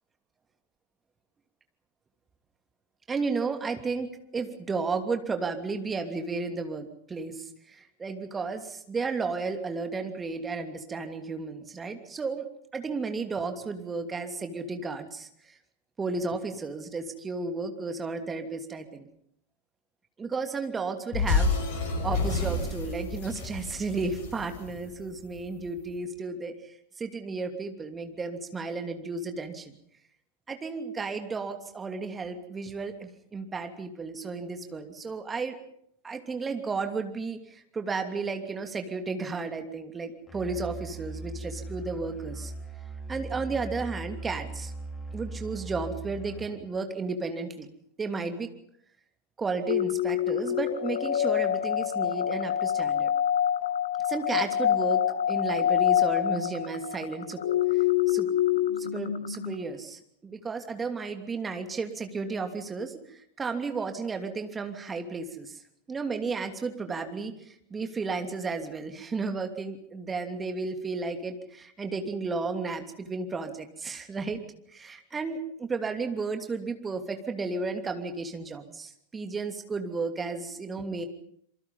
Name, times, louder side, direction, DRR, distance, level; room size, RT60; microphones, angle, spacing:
voice 1, 3.1-4.1 4.3-12.5 12.7-15.3 16.0-19.1 20.2-21.5 22.0-26.5 27.0-29.7 30.5-35.6 36.0-42.5 43.1-44.7 45.1-47.7 48.0-48.5 49.4-53.1 54.1-57.4 58.1-58.3 58.8-65.6 65.9-67.3 67.7-74.4 74.7-81.1, right 4 dB, 15° right, 6 dB, 2.8 m, -33 dB
sound 1, 21.1-25.5, left 3 dB, 50° left, 6.4 m, -29 dB
Musical instrument, 40.3-46.7, right 2 dB, 10° left, 3.3 m, -39 dB
sound 2, 49.7-59.5, left 11 dB, 65° left, 1.6 m, -26 dB
27.5 x 23.5 x 5.6 m, 0.70 s
figure-of-eight pair, 90°, 0 cm